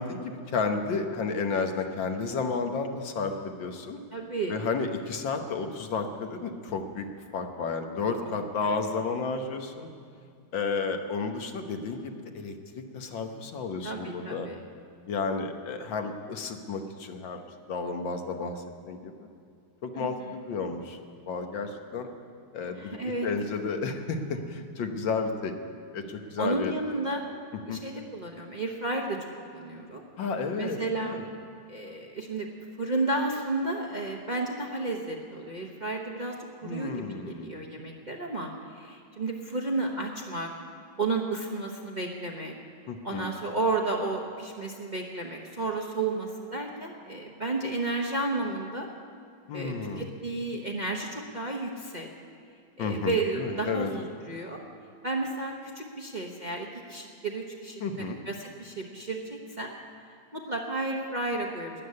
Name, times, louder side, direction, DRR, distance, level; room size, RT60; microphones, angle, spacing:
voice 1, 0.0-4.0 4.5-7.1 7.3-9.9 10.5-14.5 15.1-17.4 17.7-19.3 19.8-21.0 21.3-22.1 22.5-25.5 25.9-26.7 27.7-27.8 30.2-31.3 36.6-37.7 42.9-43.3 49.5-50.0 52.8-53.9 57.8-58.2, left 4 dB, 75° left, 5 dB, 1.8 m, -32 dB
voice 2, 4.1-4.6 8.2-8.3 8.6-8.8 13.8-14.6 19.9-20.1 22.8-23.3 26.4-27.2 27.7-30.0 30.6-31.2 31.7-32.5 32.8-36.4 36.6-40.5 41.0-42.5 43.0-48.9 49.5-52.1 52.8-54.6 55.0-59.7 60.3-61.9, right 2 dB, 30° right, 0 dB, 1.0 m, -32 dB
13.0 x 10.0 x 9.6 m, 2.3 s
omnidirectional pair, 2.1 m